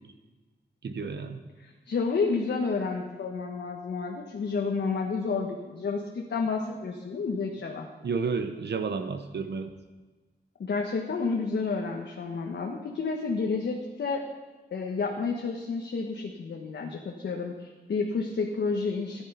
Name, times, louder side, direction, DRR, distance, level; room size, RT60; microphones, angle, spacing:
voice 1, 0.8-1.4 8.0-9.7, right 5 dB, 70° right, 8 dB, 0.9 m, -31 dB
voice 2, 1.6-7.9 10.6-14.2 14.7-19.2, left 4 dB, 80° left, 0 dB, 1.3 m, -30 dB
14.5 x 10.5 x 5.6 m, 1.3 s
wide cardioid pair, 155°, 18 cm